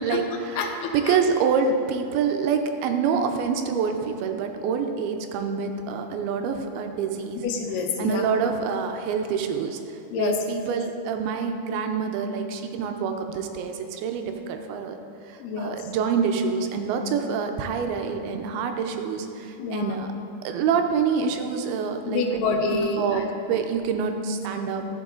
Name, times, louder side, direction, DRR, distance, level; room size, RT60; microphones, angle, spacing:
voice 1, 0.0-7.4 8.0-15.0 15.3-20.1 20.4-22.2 22.7-24.8, right 6 dB, 80° right, 5 dB, 2.4 m, -26 dB
voice 2, 0.6-1.2 7.4-8.2 10.1-10.4 15.4-15.9 19.6-20.0 22.0-23.2, left 4 dB, 85° left, 3 dB, 2.8 m, -27 dB
13.5 x 6.7 x 3.8 m, 2.6 s
omnidirectional pair, 4.5 m